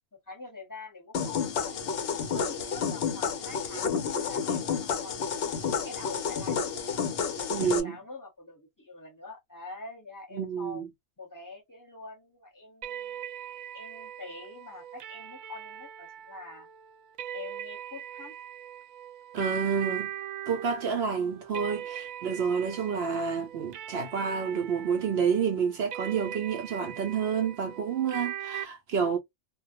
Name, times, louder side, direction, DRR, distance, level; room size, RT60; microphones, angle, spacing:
voice 1, 0.1-1.7 2.3-5.5 5.8-6.6 7.2-10.8 11.2-13.3 13.7-16.7 17.3-18.3, left 3 dB, 15° left, 0.8 m, -45 dB
sound 1, 1.1-7.8, left 6 dB, 60° left, 0.7 m, -30 dB
voice 2, 7.5-8.0 10.3-10.9 19.3-20.1 20.5-29.2, right 6 dB, 65° right, 0.7 m, -29 dB
sound 2, 12.8-28.6, right 10 dB, 80° right, 1.0 m, -40 dB
2.3 x 2.1 x 2.7 m
omnidirectional pair, 1.4 m